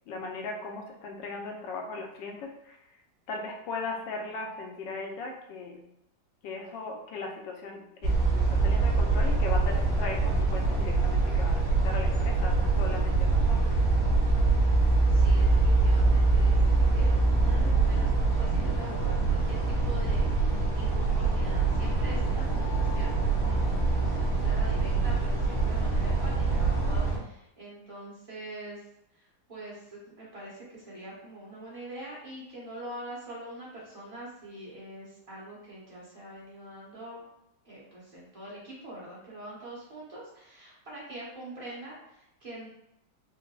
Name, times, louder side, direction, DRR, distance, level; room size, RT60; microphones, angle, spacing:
voice 1, 0.1-2.8 3.3-5.8 6.4-13.8, left 3 dB, 80° left, 2 dB, 1.3 m, -38 dB
sound 1, 8.0-27.2, right 3 dB, 50° right, 1.7 m, -24 dB
voice 2, 15.1-28.8 29.1-37.2 37.6-42.7, right 1 dB, 20° right, -7 dB, 1.0 m, -44 dB
4.8 x 2.0 x 2.3 m, 0.83 s
omnidirectional pair, 2.0 m